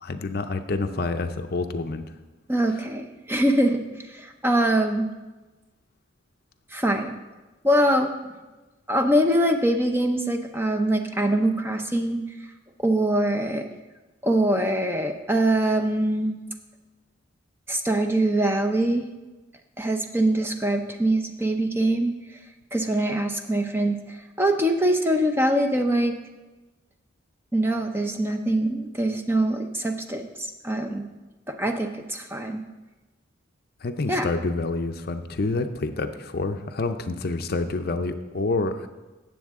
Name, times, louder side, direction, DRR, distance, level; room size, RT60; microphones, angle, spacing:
voice 1, 0.0-2.1 2.7-2.9 33.8-38.9, left 3 dB, 50° left, 8 dB, 0.6 m, -28 dB
voice 2, 2.5-5.1 6.7-7.1 7.6-8.1 8.9-12.2 12.8-13.7 14.2-16.4 17.7-19.1 19.8-22.1 22.7-26.2 27.5-31.0 31.5-32.6 34.1-34.3, right 1 dB, 10° right, 5 dB, 0.6 m, -23 dB
17.0 x 7.3 x 3.6 m, 1.2 s
head